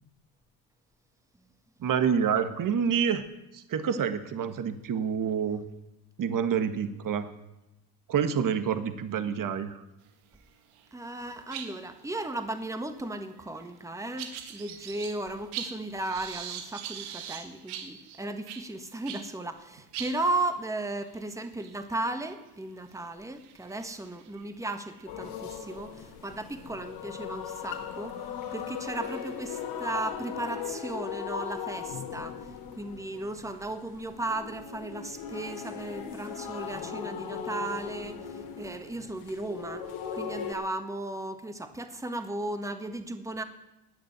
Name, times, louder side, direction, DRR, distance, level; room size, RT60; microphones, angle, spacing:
voice 1, 1.8-3.2 3.5-5.6 6.2-7.3 8.1-9.8, right 7 dB, 45° right, 10 dB, 1.5 m, -27 dB
sound 1, 10.4-10.9 11.1-19.3 19.7-19.8 19.9-25.8 26.3-26.6 27.4-27.5 28.1-29.9, right 9 dB, 85° right, 1.8 m, -43 dB
voice 2, 10.9-28.2 28.5-32.5 32.8-39.9 40.1-43.4, right 2 dB, 5° right, 8 dB, 1.5 m, -35 dB
sound 2, 25.1-40.5, left 7 dB, 75° left, 3.4 m, -38 dB
19.0 x 6.8 x 9.1 m, 0.92 s
supercardioid pair, 85°, 45 cm